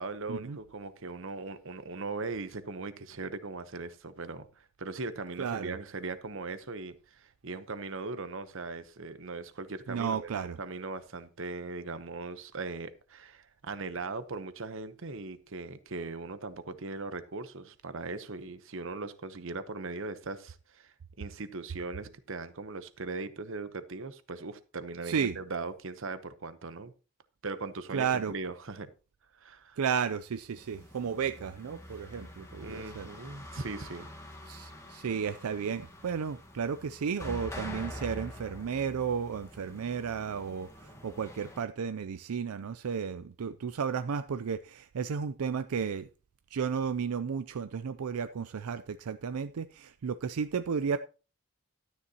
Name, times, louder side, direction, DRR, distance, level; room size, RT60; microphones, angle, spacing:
voice 1, 0.0-10.3 10.6-26.9 27.4-28.9 29.3-29.8 32.6-34.1, right 3 dB, 60° right, 0.9 m, -39 dB
voice 2, 5.4-5.8 9.9-10.6 25.1-25.4 27.9-28.3 29.8-33.1 34.5-46.1 46.5-51.0, right 6 dB, 80° right, 0.4 m, -33 dB
sound 1, 30.6-41.6, left 1 dB, 15° left, 1.4 m, -46 dB
12.5 x 9.6 x 2.9 m
head